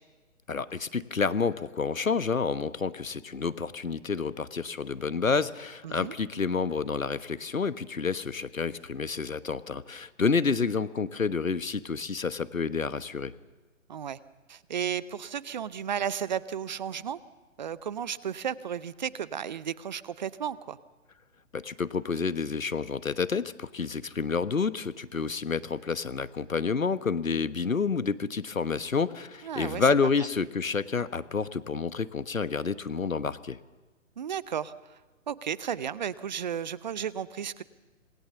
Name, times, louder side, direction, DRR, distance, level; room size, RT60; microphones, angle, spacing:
voice 1, 0.5-13.3 21.5-33.6, left 5 dB, 80° left, 15 dB, 1.2 m, -29 dB
voice 2, 5.8-6.1 13.9-14.2 14.5-17.2 17.6-20.8 29.4-29.9 30.2-30.3 34.2-35.0 35.3-37.6, right 8 dB, 35° right, 19 dB, 0.7 m, -34 dB
26.0 x 20.0 x 6.9 m, 1.2 s
figure-of-eight pair, 135°, 40 cm